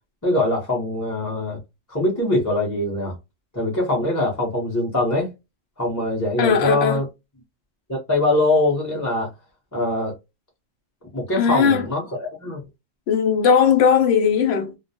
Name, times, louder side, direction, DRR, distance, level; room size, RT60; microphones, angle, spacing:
voice 1, 0.2-1.6 1.9-3.2 3.5-5.3 5.8-7.0 7.9-9.3 9.7-10.1 11.1-12.6, left 1 dB, 20° left, 0.6 m, -22 dB
voice 2, 6.4-7.0 11.3-11.9 13.1-14.7, left 7 dB, 70° left, 0.8 m, -18 dB
2.3 x 2.1 x 2.7 m
omnidirectional pair, 1.2 m